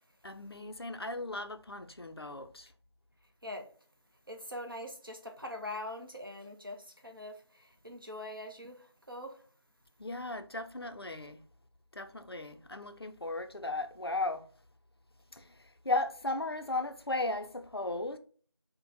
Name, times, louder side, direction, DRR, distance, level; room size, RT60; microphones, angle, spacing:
voice 1, 0.2-2.7 10.0-11.4 11.9-14.5 15.3-18.2, left 2 dB, 60° left, 0.4 m, -36 dB
voice 2, 4.3-9.4, left 1 dB, 50° right, 0.6 m, -43 dB
3.1 x 2.0 x 2.5 m
figure-of-eight pair, 180°, 15 cm